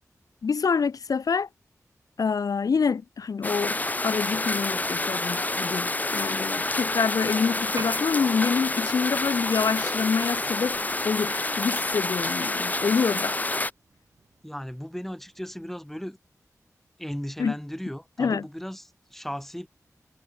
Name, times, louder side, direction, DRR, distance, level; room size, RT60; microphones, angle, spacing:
voice 1, 0.4-1.5 2.2-3.8 4.0-10.8 11.0-13.3 17.4-17.5 18.2-18.5, left 5 dB, 85° left, 1.7 m, -26 dB
sound 1, 3.4-13.7, left 2 dB, 30° left, 0.9 m, -28 dB
Piano, 7.7-15.7, right 5 dB, 85° right, 3.0 m, -49 dB
voice 2, 14.4-16.2 17.0-19.7, equal, 5° left, 3.0 m, -36 dB
wide cardioid pair, 65°, 6 cm